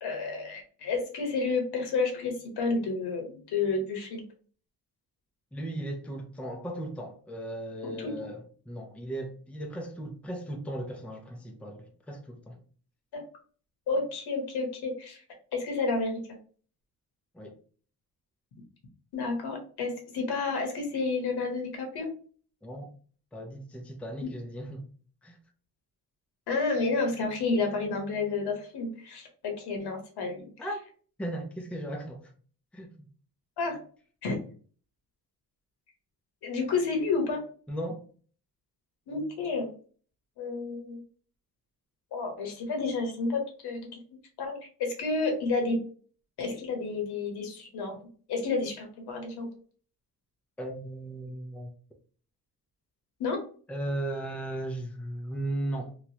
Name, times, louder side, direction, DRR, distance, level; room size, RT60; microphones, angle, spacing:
voice 1, 0.0-4.2 7.8-8.3 13.1-13.2 13.9-15.2 15.5-16.4 19.1-22.1 26.5-30.5 33.6-33.8 34.2-34.4 36.4-37.4 39.1-39.7 40.4-41.0 42.1-43.9 44.4-45.8 46.4-48.0 48.3-49.5 53.2-53.4, left 3 dB, 85° left, 1.1 m, -30 dB
voice 2, 5.5-12.6 17.3-17.6 22.6-22.9 23.3-24.9 25.2-25.4 30.6-30.8 31.2-32.3 32.7-33.1 37.7-38.0 50.6-51.7 53.7-55.9, right 1 dB, 5° left, 0.4 m, -36 dB
3.0 x 2.3 x 2.8 m
cardioid pair, 120°, 38 cm